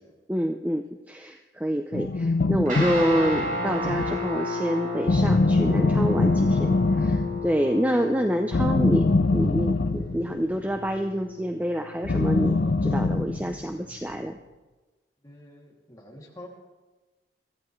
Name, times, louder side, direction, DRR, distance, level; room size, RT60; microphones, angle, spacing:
voice 1, 0.3-14.4, equal, 10° right, 5 dB, 0.4 m, -27 dB
sound 1, 1.9-4.3 5.1-7.6 8.5-10.6 12.0-13.7, left 3 dB, 70° left, 0.6 m, -23 dB
Guitar, 2.7-14.1, left 2 dB, 45° right, 4.3 m, -34 dB
voice 2, 15.2-16.5, left 1 dB, 20° left, -2 dB, 2.5 m, -47 dB
23.0 x 14.0 x 3.1 m, 1.2 s
head